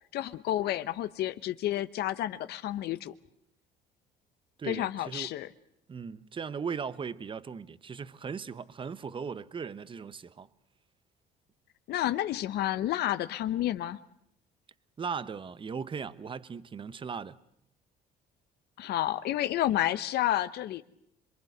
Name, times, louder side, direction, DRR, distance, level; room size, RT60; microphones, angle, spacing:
voice 1, 0.1-3.1 4.7-5.5 11.9-14.0 18.8-20.8, left 13 dB, 70° left, 1.0 m, -30 dB
voice 2, 4.6-5.3 5.9-10.5 15.0-17.4, right 6 dB, 30° right, 1.0 m, -38 dB
26.5 x 23.0 x 8.0 m
cardioid pair, 110°, 17 cm